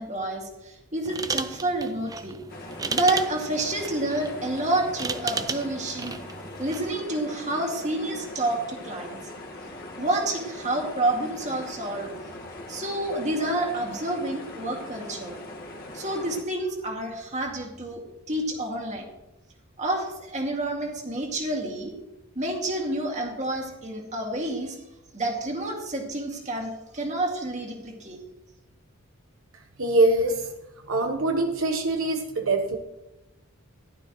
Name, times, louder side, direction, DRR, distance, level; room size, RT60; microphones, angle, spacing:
voice 1, 0.0-2.4 2.9-6.2 6.6-9.2 10.0-12.1 12.7-15.4 15.9-19.1 19.8-21.9 22.4-24.8 25.1-28.2, right 1 dB, 35° right, 1 dB, 2.2 m, -29 dB
sound 1, 1.0-7.0, right 4 dB, 15° right, 0.4 m, -34 dB
sound 2, 2.5-16.4, left 1 dB, 45° left, 1.7 m, -41 dB
voice 2, 29.8-30.5 30.9-32.8, right 2 dB, 75° right, 4 dB, 1.1 m, -23 dB
15.5 x 11.5 x 3.1 m, 0.98 s
head